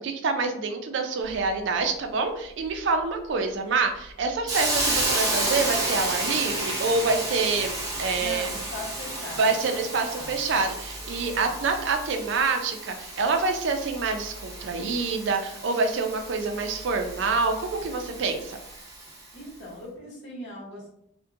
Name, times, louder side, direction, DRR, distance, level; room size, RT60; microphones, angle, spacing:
voice 1, 0.0-8.5 9.4-18.6, right 4 dB, 65° right, 5 dB, 0.4 m, -26 dB
Hiss, 4.5-19.3, right 2 dB, 20° right, 0.6 m, -32 dB
voice 2, 8.1-10.6 11.1-11.6 19.3-20.9, left 1 dB, 55° left, -6 dB, 1.0 m, -40 dB
2.6 x 2.1 x 2.4 m, 0.74 s
head